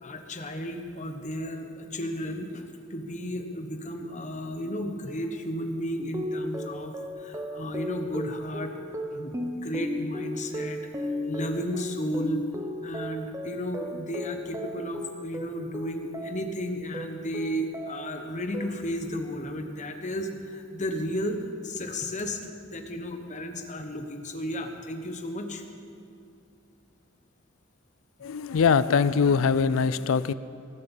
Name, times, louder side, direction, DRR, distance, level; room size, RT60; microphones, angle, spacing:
voice 1, 0.0-12.5 12.8-22.4 22.7-25.6, equal, 35° left, 5 dB, 1.2 m, -33 dB
sound 1, 6.1-16.6 16.9-18.2 18.5-19.1, left 1 dB, 15° right, 0.7 m, -36 dB
voice 2, 28.2-30.3, left 5 dB, 70° left, 16 dB, 0.4 m, -22 dB
20.0 x 7.7 x 7.2 m, 2.6 s
head